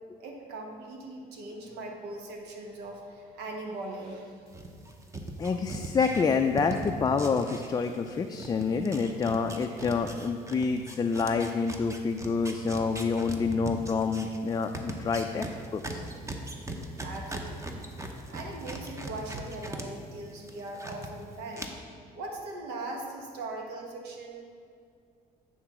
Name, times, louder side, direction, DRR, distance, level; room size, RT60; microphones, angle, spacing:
voice 1, 0.2-4.5 17.0-17.9 18.3-21.7 22.1-24.4, right 2 dB, 90° right, 1 dB, 1.3 m, -40 dB
sound 1, 4.5-8.1 8.4-19.8 20.2-21.1 21.5-21.7, right 2 dB, 15° right, 0.8 m, -39 dB
voice 2, 5.4-15.5 15.7-16.0, left 5 dB, 25° left, 5 dB, 0.3 m, -28 dB
9.3 x 3.9 x 5.9 m, 2.3 s
cardioid pair, 110°, 17 cm